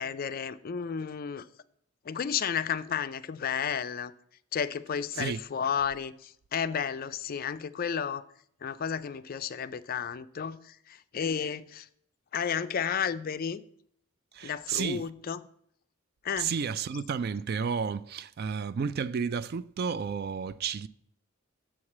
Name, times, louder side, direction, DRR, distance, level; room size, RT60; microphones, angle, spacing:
voice 1, 0.0-1.5 2.0-4.1 4.5-8.2 8.6-11.9 12.3-13.6 14.4-15.4 16.2-16.5, left 7 dB, 40° left, 0.4 m, -32 dB
voice 2, 14.3-15.1 16.4-20.9, right 6 dB, 45° right, 0.3 m, -32 dB
7.3 x 4.8 x 7.2 m
head